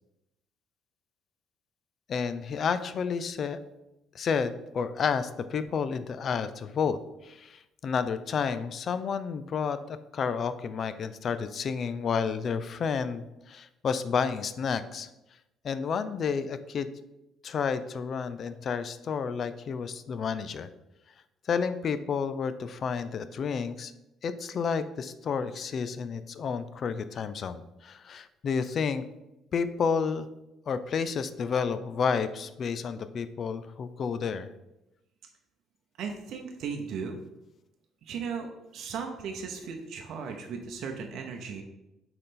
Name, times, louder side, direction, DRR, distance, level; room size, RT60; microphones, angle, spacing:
voice 1, 2.1-3.6 4.1-15.1 15.6-16.9 17.4-20.7 21.5-23.9 24.2-29.0 29.5-30.3 30.7-34.5, left 6 dB, 40° left, 12 dB, 0.4 m, -30 dB
voice 2, 36.0-37.2 38.0-38.5 38.7-41.6, right 6 dB, 55° right, 2 dB, 0.7 m, -36 dB
6.5 x 4.0 x 3.8 m, 0.93 s
cardioid pair, 160°, 0 cm